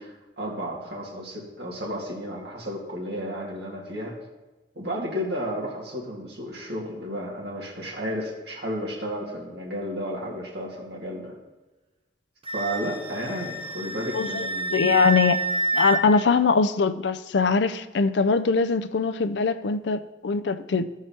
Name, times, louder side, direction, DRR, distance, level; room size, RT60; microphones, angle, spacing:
voice 1, 0.0-4.1 4.8-11.3 12.5-15.0, equal, 65° right, -3 dB, 2.4 m, -33 dB
Wind instrument woodwind instrument, 12.5-16.0, right 2 dB, 30° right, 0.7 m, -28 dB
voice 2, 14.1-15.4 15.7-20.8, left 4 dB, 70° left, 12 dB, 0.5 m, -22 dB
14.0 x 4.8 x 4.3 m, 1.2 s
head